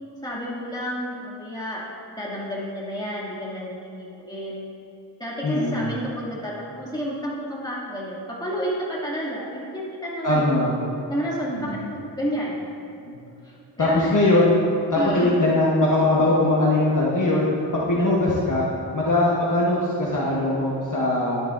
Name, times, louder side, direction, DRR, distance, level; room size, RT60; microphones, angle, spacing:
voice 1, 0.2-1.8 2.1-4.7 5.2-10.5 11.1-12.7 13.4-14.2 14.9-15.4, equal, 10° left, -7 dB, 2.3 m, -30 dB
voice 2, 5.4-5.8 10.2-10.7 11.5-11.9 13.0-13.2 13.8-14.5 14.9-17.5 17.7-18.7 18.9-21.4, left 2 dB, 45° left, -6 dB, 1.2 m, -21 dB
11.0 x 10.5 x 2.6 m, 2.7 s
wide cardioid pair, 75°, 44 cm